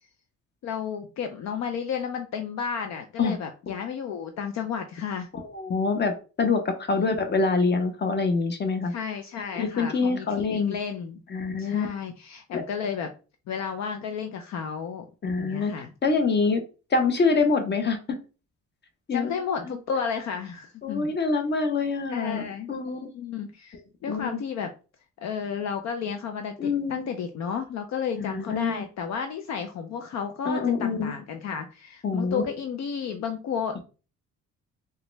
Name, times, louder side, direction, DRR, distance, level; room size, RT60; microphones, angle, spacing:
voice 1, 0.6-5.3 7.0-7.2 8.9-11.2 11.6-13.1 13.5-15.1 15.4-15.9 19.1-21.1 22.1-24.7 25.2-33.8, left 7 dB, 65° left, 6 dB, 0.5 m, -32 dB
voice 2, 5.3-6.1 6.4-8.9 9.6-10.7 11.3-11.9 12.5-12.6 15.2-15.7 16.0-16.6 16.9-18.2 19.1-19.3 20.8-22.4 22.7-23.0 24.1-24.4 26.6-27.1 28.2-28.9 30.5-31.1 32.0-32.4, left 4 dB, 35° left, 6 dB, 0.8 m, -25 dB
3.6 x 2.2 x 3.1 m, 0.34 s
cardioid pair, 90°, 30 cm